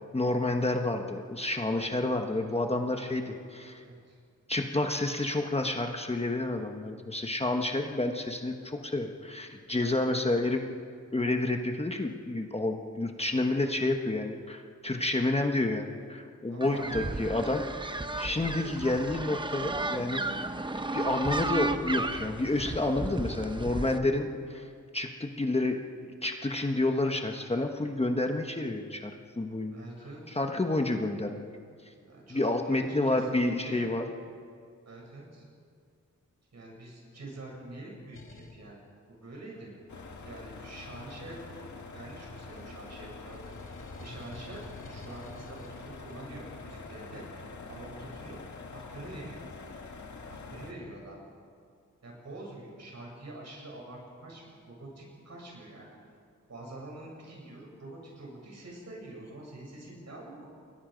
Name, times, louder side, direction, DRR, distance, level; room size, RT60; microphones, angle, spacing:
voice 1, 0.1-3.8 4.5-10.6 11.1-17.6 18.2-20.3 20.9-25.8 26.2-29.1 29.4-29.8 30.3-31.5 32.3-34.0, left 2 dB, 20° left, 3 dB, 1.2 m, -29 dB
voice 2, 3.8-4.2 9.8-10.4 16.5-17.3 23.0-23.2 29.7-30.4 32.0-33.8 34.9-35.4 36.5-38.8 39.1-39.7 40.2-41.4 41.9-43.5 44.0-47.2 47.7-48.4 48.7-49.4 50.3-51.2 52.0-55.9 56.5-60.5, right 2 dB, 60° right, -2 dB, 7.6 m, -45 dB
sound 1, 16.6-24.0, right 2 dB, 15° right, 0.8 m, -34 dB
sound 2, 38.1-38.6 39.9-41.8 42.2-46.4, left 2 dB, 45° left, 2.1 m, -51 dB
sound 3, 39.9-50.7, left 4 dB, 65° left, 2.2 m, -45 dB
29.0 x 22.0 x 5.2 m, 2.2 s
wide cardioid pair, 160°, 31 cm